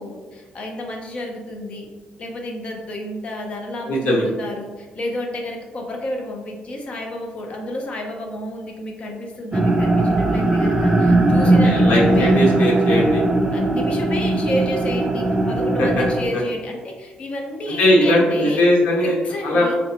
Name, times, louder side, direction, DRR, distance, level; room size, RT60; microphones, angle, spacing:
voice 1, 0.0-1.9 2.2-12.3 13.5-18.6 19.2-19.8, left 1 dB, 40° left, 1 dB, 0.6 m, -31 dB
voice 2, 3.9-4.2 11.4-13.2 15.8-16.0 17.8-19.1 19.4-19.7, left 1 dB, 75° left, -3 dB, 1.2 m, -18 dB
sound 1, 9.5-16.2, right 2 dB, 20° right, 0.4 m, -18 dB
3.8 x 3.2 x 2.9 m, 1.2 s
cardioid pair, 140°, 3 cm